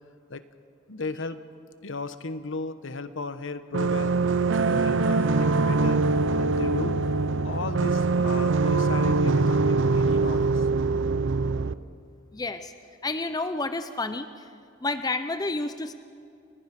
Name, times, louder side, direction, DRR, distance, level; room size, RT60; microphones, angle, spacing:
voice 1, 0.9-1.4 1.8-4.2 4.5-6.0 6.4-7.0 7.4-10.7, left 3 dB, 70° left, 12 dB, 1.1 m, -35 dB
sound 1, 3.7-11.7, right 3 dB, 65° right, 0.6 m, -23 dB
voice 2, 12.3-12.7 13.0-14.3 14.8-15.9, left 3 dB, 20° left, 10 dB, 0.7 m, -29 dB
30.0 x 20.5 x 6.0 m, 2.4 s
head